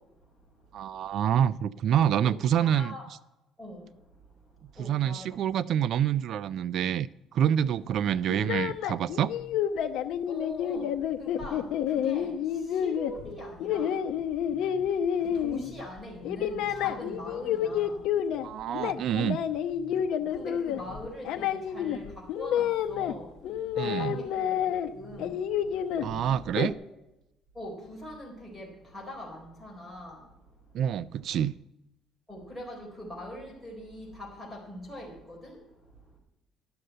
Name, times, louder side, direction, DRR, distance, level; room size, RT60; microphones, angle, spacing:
voice 1, 0.7-2.9 4.8-9.3 18.4-19.4 23.8-24.2 26.0-26.7 30.7-31.5, right 9 dB, 50° right, 19 dB, 0.3 m, -27 dB
voice 2, 2.6-3.0 3.6-3.8 4.8-5.3 8.3-8.4 10.3-10.9 11.2-11.6 11.9-12.3 12.8-13.9 15.4-18.0 20.3-22.0 22.4-23.3 23.8-24.5 24.9-25.3 27.6-28.7 28.9-30.2 32.3-35.5, left 1 dB, ahead, -3 dB, 4.2 m, -42 dB
sound 1, 8.3-15.9 16.2-18.5 18.7-23.1 23.4-24.9 25.2-26.7, left 9 dB, 70° left, 0.7 m, -29 dB
11.0 x 6.6 x 7.7 m, 0.89 s
cardioid pair, 155°, 0 cm